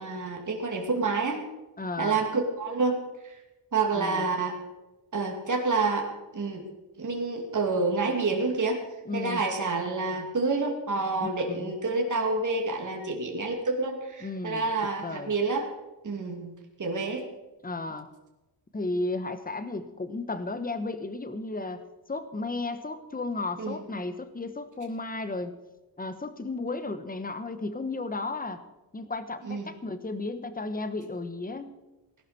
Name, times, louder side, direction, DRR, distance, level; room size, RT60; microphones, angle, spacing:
voice 1, 0.0-1.4 2.0-3.0 3.2-3.4 3.7-4.5 5.1-6.1 6.3-6.6 7.0-8.8 9.1-15.7 16.0-16.5 16.8-17.2 23.6-23.8 29.5-29.7, right 3 dB, 40° right, 1 dB, 2.8 m, -28 dB
voice 2, 1.8-2.2 3.9-4.3 9.1-9.4 11.2-11.7 14.2-14.7 15.0-15.3 17.6-18.1 18.7-21.8 22.1-25.6 26.0-28.6 28.9-31.7, left 3 dB, 20° left, 10 dB, 1.2 m, -34 dB
18.5 x 12.0 x 4.4 m, 1.1 s
wide cardioid pair, 120°, 45 cm